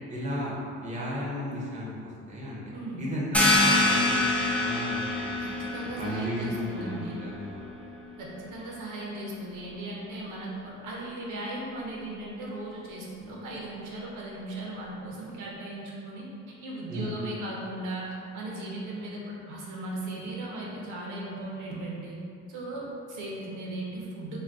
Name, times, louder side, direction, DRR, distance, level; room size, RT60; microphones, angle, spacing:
voice 1, 0.1-0.6 0.8-2.6 3.0-4.3 4.6-5.4 6.0-7.6 16.9-17.2, equal, 25° right, -5 dB, 0.7 m, -34 dB
voice 2, 2.7-3.0 5.4-7.2 8.2-16.2 16.6-18.0 18.3-22.1 22.5-24.4, right 2 dB, 80° right, -4 dB, 0.7 m, -37 dB
sound 1, 3.3-8.7, left 2 dB, 5° left, 0.3 m, -27 dB
2.5 x 2.2 x 3.4 m, 2.4 s
cardioid pair, 90°, 30 cm